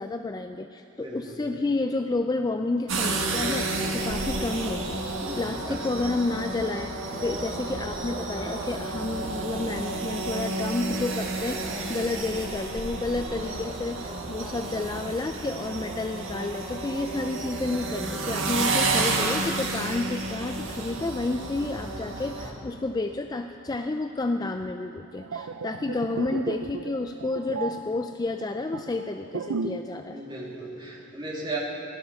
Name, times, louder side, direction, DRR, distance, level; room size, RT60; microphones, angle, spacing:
voice 1, 0.0-30.2, left 2 dB, 20° left, 7 dB, 0.3 m, -30 dB
voice 2, 1.0-1.4 5.2-5.9 30.1-31.6, right 2 dB, 20° right, -4 dB, 2.5 m, -36 dB
sound 1, 2.9-22.5, right 2 dB, 60° right, 1.7 m, -31 dB
sound 2, 25.0-30.0 30.2-30.5, right 4 dB, 75° right, 0.5 m, -35 dB
16.5 x 12.5 x 5.8 m, 2.8 s
head